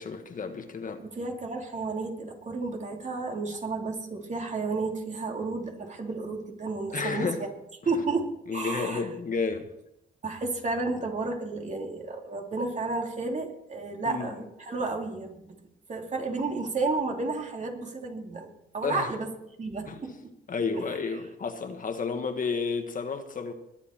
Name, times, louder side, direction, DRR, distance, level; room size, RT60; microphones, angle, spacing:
voice 1, 0.0-1.0 6.9-7.4 8.5-9.7 14.1-14.3 18.8-19.1 19.9-20.0 20.5-23.5, left 5 dB, 45° left, 1.6 m, -31 dB
voice 2, 1.0-7.5 7.8-9.1 10.2-15.6 15.9-18.5 18.7-19.3 19.6-20.3 20.8-21.0, right 3 dB, 35° right, 2.9 m, -32 dB
20.5 x 9.7 x 4.5 m
cardioid pair, 90°, 20 cm